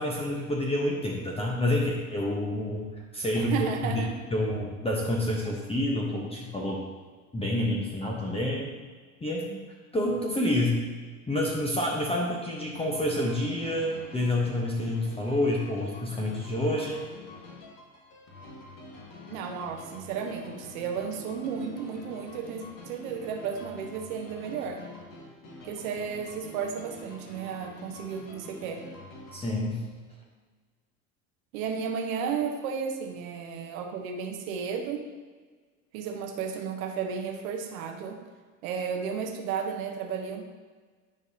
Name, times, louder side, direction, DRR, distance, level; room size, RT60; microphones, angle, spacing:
voice 1, 0.0-4.0 4.3-6.8 7.3-8.7 9.2-9.6 9.9-10.8 11.3-17.0 29.3-29.8, left 1 dB, 15° left, -2 dB, 1.0 m, -28 dB
voice 2, 3.3-4.1 19.3-24.8 25.6-28.8 31.5-35.1 35.9-38.2 38.6-40.4, right 6 dB, 70° right, 4 dB, 1.0 m, -33 dB
sound 1, 12.9-29.5, left 3 dB, 50° left, 1.8 m, -46 dB
9.7 x 4.7 x 2.8 m, 1.5 s
hypercardioid pair, 85°, 42 cm